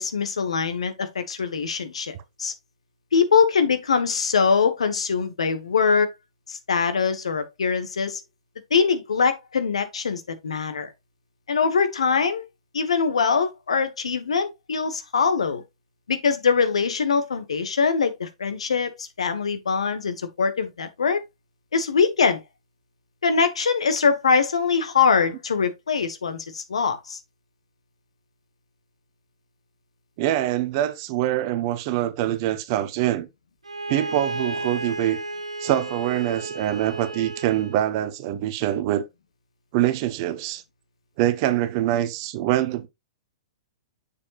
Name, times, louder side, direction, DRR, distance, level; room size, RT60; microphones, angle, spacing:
voice 1, 0.0-2.5 3.1-6.1 6.5-8.2 8.7-10.9 11.5-12.4 12.7-15.6 16.1-21.2 21.7-22.4 23.2-27.2, left 5 dB, 70° left, 1.3 m, -23 dB
voice 2, 30.2-33.3 33.9-35.2 35.6-39.0 39.7-40.6 41.2-42.9, right 13 dB, 45° right, 1.0 m, -24 dB
Bowed string instrument, 33.6-37.9, right 2 dB, 85° right, 0.8 m, -33 dB
6.9 x 6.9 x 2.5 m
figure-of-eight pair, 110°, 3 cm